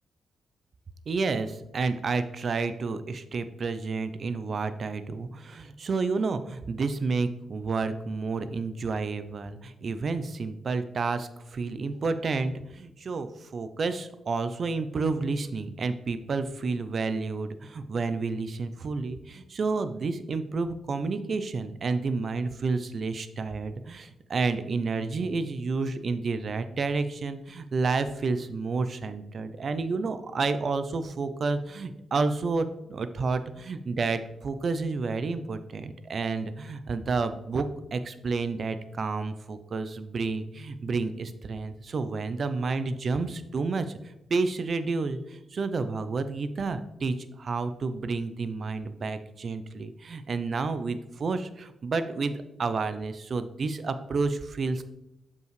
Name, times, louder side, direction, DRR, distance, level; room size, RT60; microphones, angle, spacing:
voice 1, 1.1-54.8, right 4 dB, 50° right, 11 dB, 0.5 m, -30 dB
7.0 x 5.3 x 3.2 m, 0.87 s
cardioid pair, 85°, 0 cm